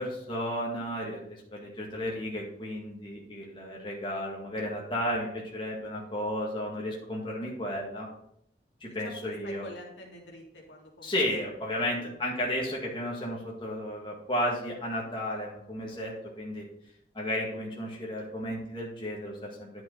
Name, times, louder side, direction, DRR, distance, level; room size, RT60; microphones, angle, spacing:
voice 1, 0.0-8.1 8.8-9.7 11.0-16.6 17.1-19.8, left 1 dB, 30° left, -3 dB, 2.0 m, -33 dB
voice 2, 8.9-11.2 11.7-12.3, left 1 dB, 85° left, -1 dB, 2.4 m, -47 dB
10.5 x 6.1 x 4.0 m, 0.72 s
head